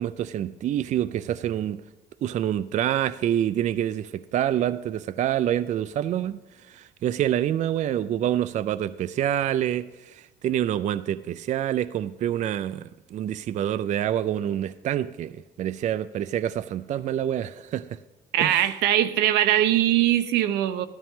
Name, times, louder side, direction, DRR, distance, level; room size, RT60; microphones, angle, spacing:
voice 1, 0.0-1.8 2.2-6.4 6.7-18.0 18.4-18.7, right 11 dB, 45° right, 0.4 m, -27 dB
voice 2, 18.3-20.9, right 12 dB, 85° right, 0.7 m, -21 dB
14.0 x 12.5 x 3.6 m
cardioid pair, 110°, 17 cm